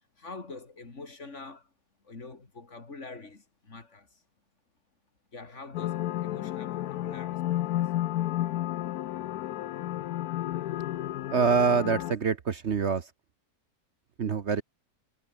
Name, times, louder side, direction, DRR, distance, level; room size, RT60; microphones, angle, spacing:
voice 1, 0.2-1.7 2.0-4.2 5.3-7.9, left 3 dB, 50° left, 3.1 m, -45 dB
sound 1, 5.7-12.1, left 13 dB, 90° left, 1.2 m, -32 dB
voice 2, 11.3-13.1 14.2-14.6, right 6 dB, 50° right, 1.2 m, -25 dB
omnidirectional pair, 1.6 m